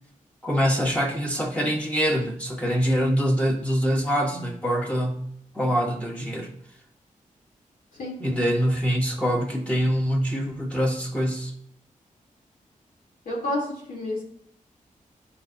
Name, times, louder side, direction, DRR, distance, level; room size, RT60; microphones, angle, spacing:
voice 1, 0.4-5.3 5.5-6.5 8.2-11.5, equal, 10° left, 1.3 m, -24 dB
voice 2, 13.2-14.2, left 1 dB, 85° left, 2.9 m, -30 dB
12.0 x 4.1 x 2.7 m
cardioid pair, 85°, 14 cm